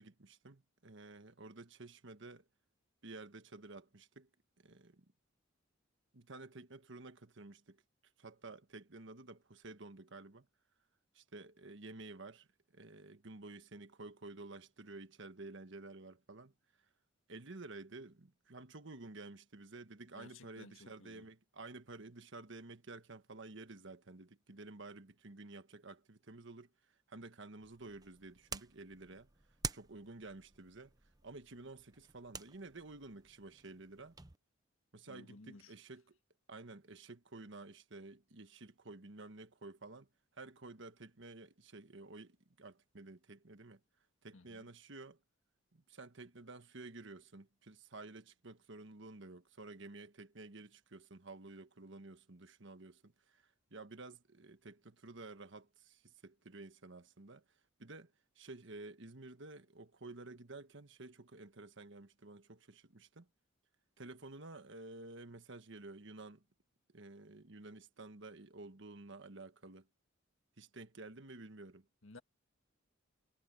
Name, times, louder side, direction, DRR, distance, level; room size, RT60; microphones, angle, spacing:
voice 1, 0.0-2.4 3.0-4.3 4.6-5.0 6.1-7.8 8.2-10.5 11.1-12.5 12.7-16.5 17.3-26.7 27.1-29.3 29.7-30.9 31.2-34.2 34.9-36.2 36.5-40.1 40.3-43.8 44.2-45.2 45.7-57.4 57.8-58.1 58.4-63.3 64.0-66.4 66.9-69.9 70.6-71.9, right 2 dB, 65° right, 1.4 m, -52 dB
voice 2, 20.2-21.3 35.1-35.7 44.3-44.7 72.0-72.2, left 3 dB, 85° left, 1.9 m, -56 dB
sound 1, 27.6-34.4, right 4 dB, 20° right, 0.9 m, -49 dB
head